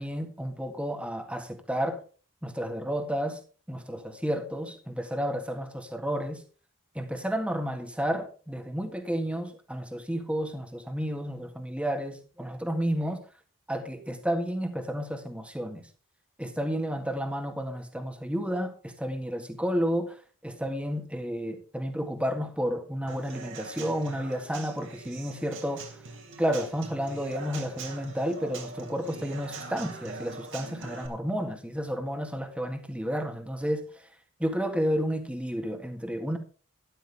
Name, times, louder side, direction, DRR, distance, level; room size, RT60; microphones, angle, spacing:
voice 1, 0.0-2.0 2.4-3.4 3.7-6.4 7.0-13.2 13.7-15.9 16.4-20.2 20.4-26.0 26.4-34.1 34.4-36.4, equal, 5° right, 5 dB, 1.8 m, -31 dB
Human voice / Acoustic guitar / Drum, 23.1-31.1, right 3 dB, 60° right, 3.3 m, -43 dB
12.5 x 12.0 x 3.6 m, 0.37 s
head